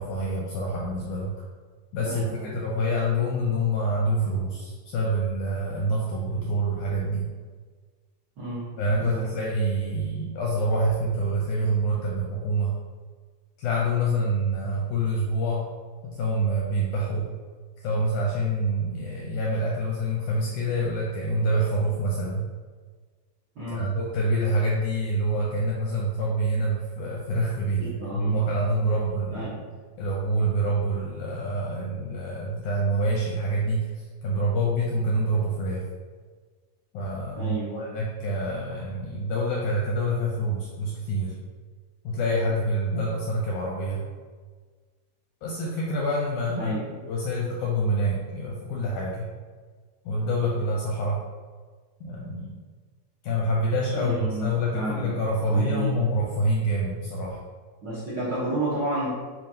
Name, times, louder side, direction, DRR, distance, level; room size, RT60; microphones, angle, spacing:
voice 1, 0.0-1.3 1.9-7.3 8.8-12.7 13.6-15.7 16.0-17.3 17.8-22.5 23.7-29.5 30.0-35.8 36.9-41.3 42.0-44.0 45.4-46.7 47.1-49.3 50.0-51.2 52.0-52.6 53.2-57.4, right 1 dB, 80° left, -3 dB, 1.7 m, -26 dB
voice 2, 2.0-2.5 8.4-8.7 8.9-9.3 23.5-23.9 27.8-28.4 29.3-29.7 37.4-37.8 46.6-47.0 53.9-55.2 55.5-56.0 57.8-59.1, right 2 dB, 75° right, -11 dB, 0.9 m, -31 dB
7.2 x 2.5 x 2.8 m, 1.5 s
omnidirectional pair, 4.0 m